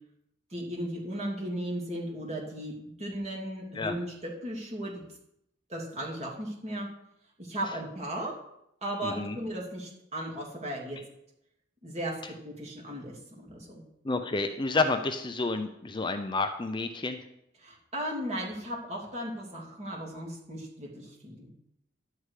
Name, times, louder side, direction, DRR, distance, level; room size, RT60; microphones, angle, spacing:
voice 1, 0.5-5.0 5.7-6.9 7.4-8.3 8.8-11.0 11.8-12.2 12.4-13.8 17.6-21.5, right 1 dB, 35° right, -2 dB, 2.7 m, -36 dB
voice 2, 9.0-9.4 14.0-17.2, left 3 dB, 25° left, 7 dB, 0.6 m, -30 dB
11.0 x 4.8 x 8.3 m, 0.79 s
head